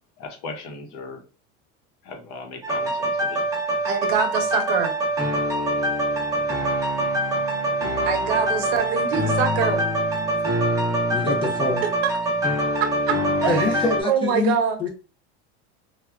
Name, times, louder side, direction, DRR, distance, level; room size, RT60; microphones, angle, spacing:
voice 1, 0.2-1.2 2.0-3.4, left 3 dB, 60° left, 0.9 m, -37 dB
sound 1, 2.6-14.0, right 1 dB, 10° right, 0.7 m, -24 dB
voice 2, 3.8-4.9 8.0-9.8 12.8-14.9, right 7 dB, 75° right, 0.8 m, -25 dB
voice 3, 11.1-11.8 13.5-14.5 14.8-14.9, left 3 dB, 15° left, 0.3 m, -25 dB
3.4 x 2.2 x 2.2 m
cardioid pair, 155°, 32 cm